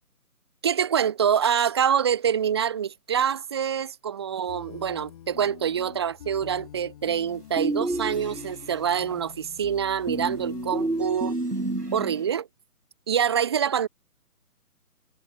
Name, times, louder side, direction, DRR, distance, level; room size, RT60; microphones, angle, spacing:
voice 1, 0.6-11.4 11.9-12.5 13.1-13.9, right 8 dB, 15° right, 1.1 m, -25 dB
sound 1, 4.5-11.3, left 11 dB, 25° left, 2.8 m, -45 dB
sound 2, 7.6-8.8 10.1-12.3, right 2 dB, 90° right, 2.7 m, -30 dB
figure-of-eight pair, 145°, 45 cm